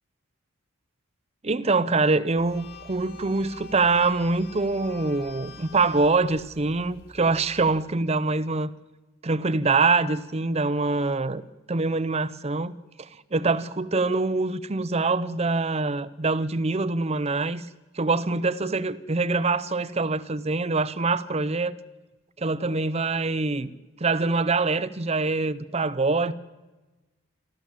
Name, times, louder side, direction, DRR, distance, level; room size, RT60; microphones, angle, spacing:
voice 1, 1.4-8.7 9.2-11.4 11.7-12.7 13.0-17.7 17.9-21.7 22.4-23.7 24.0-26.3, right 3 dB, 30° right, 0.7 m, -24 dB
sound 1, 2.4-7.8, left 4 dB, 50° left, 2.2 m, -46 dB
27.5 x 13.0 x 7.4 m
head